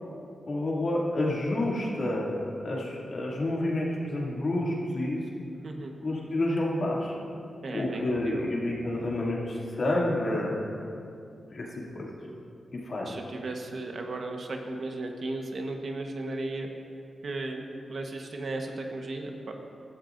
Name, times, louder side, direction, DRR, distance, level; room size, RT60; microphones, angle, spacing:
voice 1, 0.5-5.2 6.0-7.1 7.7-10.6 11.5-12.1 12.8-13.2, left 1 dB, 55° left, -4 dB, 2.5 m, -29 dB
voice 2, 7.6-8.5 13.0-16.7 17.2-19.7, right 2 dB, 65° right, 3 dB, 1.2 m, -35 dB
16.0 x 13.0 x 2.6 m, 2.6 s
cardioid pair, 80°, 0 cm